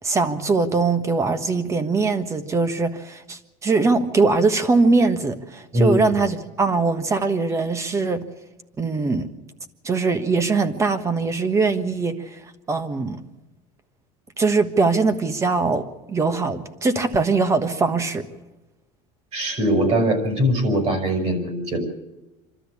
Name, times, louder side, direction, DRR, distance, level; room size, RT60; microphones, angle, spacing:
voice 1, 0.0-8.2 8.8-9.3 9.8-12.4 12.7-13.2 14.4-18.2, right 3 dB, 20° right, 10 dB, 1.4 m, -21 dB
voice 2, 19.3-21.8, equal, 40° right, 6 dB, 5.6 m, -21 dB
27.0 x 13.0 x 8.5 m, 1.0 s
cardioid pair, 150°, 15 cm